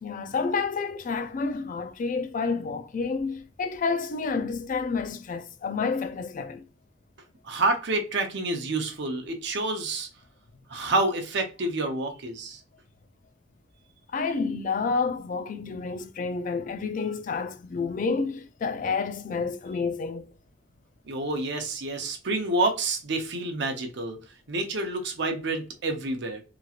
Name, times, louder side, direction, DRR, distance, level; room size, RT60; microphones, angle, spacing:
voice 1, 0.0-6.6 14.1-20.3, left 4 dB, 45° left, 0.3 m, -29 dB
voice 2, 7.4-10.1 10.7-12.6 21.1-24.2 24.5-26.4, right 2 dB, 60° right, 0.7 m, -28 dB
2.9 x 2.9 x 2.3 m
head